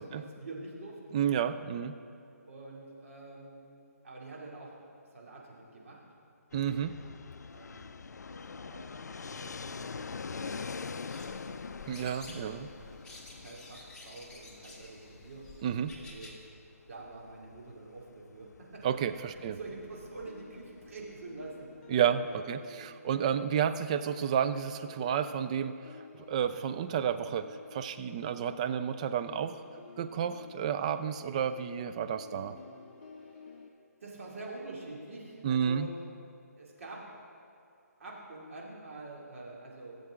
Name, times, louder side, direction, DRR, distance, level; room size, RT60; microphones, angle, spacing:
voice 1, 0.0-1.0 2.5-3.6 4.0-4.9 5.1-6.0 7.5-7.9 8.3-11.8 12.7-15.5 16.0-16.5 16.9-22.0 22.3-22.4 22.8-22.9 32.3-32.6 33.1-33.7 34.0-36.0 36.6-37.1 38.0-40.0, right 2 dB, 55° right, -3 dB, 2.8 m, -47 dB
voice 2, 1.1-2.0 6.5-6.9 11.9-12.7 15.6-16.0 18.8-19.6 21.9-26.0 26.3-29.6 30.0-32.6 35.4-35.9, right 8 dB, 25° right, 10 dB, 0.3 m, -31 dB
Fixed-wing aircraft airplane, 6.5-22.2, left 5 dB, 85° left, 0.4 m, -45 dB
sound 1, 11.1-16.5, left 2 dB, 5° left, 1.0 m, -51 dB
sound 2, 19.6-33.7, left 5 dB, 35° left, 1.0 m, -52 dB
16.5 x 7.7 x 3.7 m, 2.6 s
figure-of-eight pair, 155°, 9 cm